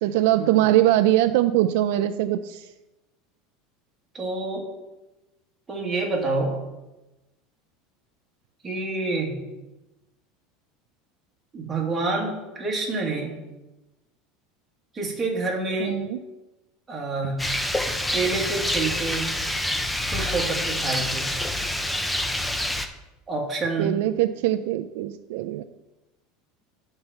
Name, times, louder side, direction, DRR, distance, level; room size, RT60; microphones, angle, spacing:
voice 1, 0.0-2.7 15.8-16.2 23.8-25.6, right 14 dB, 65° right, 9 dB, 0.3 m, -22 dB
voice 2, 4.1-4.6 5.7-6.6 8.6-9.3 11.5-13.3 14.9-15.9 16.9-17.4 18.1-19.3 20.1-21.3 23.3-23.9, right 3 dB, 10° right, -2 dB, 1.5 m, -27 dB
Rain, 17.4-22.9, left 1 dB, 5° left, 0.4 m, -27 dB
9.6 x 4.4 x 5.7 m, 1.0 s
cardioid pair, 175°, 0 cm